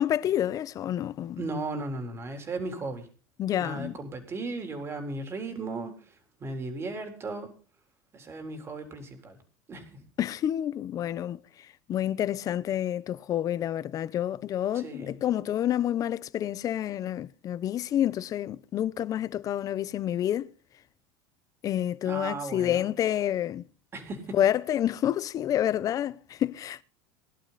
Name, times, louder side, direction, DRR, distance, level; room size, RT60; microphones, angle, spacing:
voice 1, 0.0-1.5 3.4-4.0 10.2-11.4 11.9-20.5 21.6-23.6 24.3-26.8, left 11 dB, 35° left, 0.7 m, -28 dB
voice 2, 1.4-3.1 3.6-7.5 8.1-9.4 9.7-10.0 14.7-15.2 22.1-22.9 23.9-24.4, right 3 dB, 25° right, 3.8 m, -36 dB
20.5 x 11.5 x 4.1 m
supercardioid pair, 140°, 11 cm